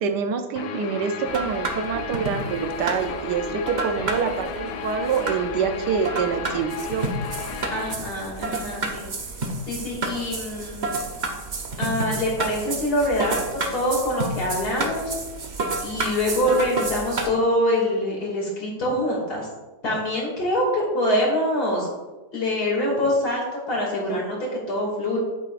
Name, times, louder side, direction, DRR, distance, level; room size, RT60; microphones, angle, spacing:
voice 1, 0.0-7.1, right 6 dB, 75° right, 6 dB, 1.3 m, -26 dB
Guitar, 0.6-7.9, left 6 dB, 90° left, 1.3 m, -34 dB
sound 1, 1.3-17.3, right 3 dB, 45° right, 0.6 m, -30 dB
voice 2, 7.7-9.1 9.6-10.9 11.8-15.1 15.8-19.5 19.8-21.9 22.3-24.4 24.7-25.2, left 1 dB, 60° left, -3 dB, 3.0 m, -24 dB
8.9 x 8.3 x 2.5 m, 1.1 s
omnidirectional pair, 1.9 m